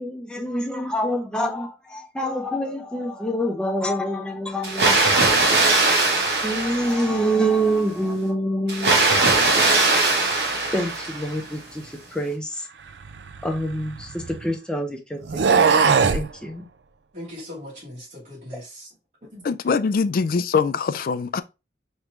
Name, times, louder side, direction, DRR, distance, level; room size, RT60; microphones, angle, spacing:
voice 1, 0.0-5.2 6.4-9.9 10.3-12.7 13.4-16.7, right 1 dB, 5° left, 0.8 m, -27 dB
Water, 4.6-7.4 8.7-11.5, right 3 dB, 65° right, 1.4 m, -20 dB
sound 1, 13.0-14.5 15.2-16.3, right 5 dB, 80° right, 0.5 m, -20 dB
voice 2, 17.1-18.9 19.2-19.5, left 1 dB, 45° right, 2.7 m, -39 dB
voice 3, 19.4-21.4, left 5 dB, 55° left, 0.3 m, -22 dB
4.9 x 3.2 x 3.1 m
head